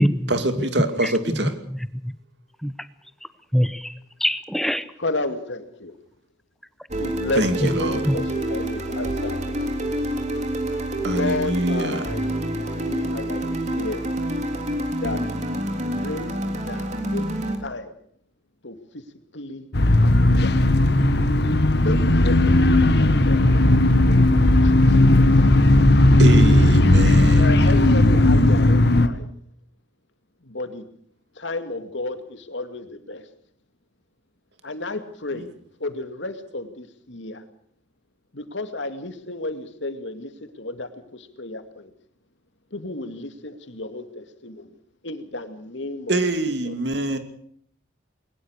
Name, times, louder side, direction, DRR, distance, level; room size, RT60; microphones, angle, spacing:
voice 1, 0.3-1.5 7.3-8.0 11.0-12.1 26.2-27.8 35.3-35.5 46.1-47.2, right 1 dB, 65° right, 8 dB, 2.6 m, -24 dB
voice 2, 3.5-3.9 4.2-4.9 7.6-7.7 8.0-8.2, equal, ahead, 13 dB, 0.9 m, -22 dB
voice 3, 5.0-5.9 7.0-9.5 11.0-12.4 12.8-13.4 13.7-14.0 15.0-15.2 15.7-16.4 16.6-17.2 17.6-17.9 18.6-19.0 19.3-19.7 20.0-20.6 21.8-22.5 22.8-24.9 27.3-29.3 30.4-30.9 31.4-33.2 34.6-35.5 35.8-37.4 38.3-41.9 42.7-44.7 45.0-46.2 46.6-46.7, left 2 dB, 75° left, 8 dB, 2.4 m, -32 dB
sound 1, 6.9-17.6, right 1 dB, 40° right, 3.4 m, -27 dB
sound 2, 19.7-29.1, left 1 dB, 60° left, 1.5 m, -16 dB
21.5 x 20.5 x 6.6 m, 0.63 s
head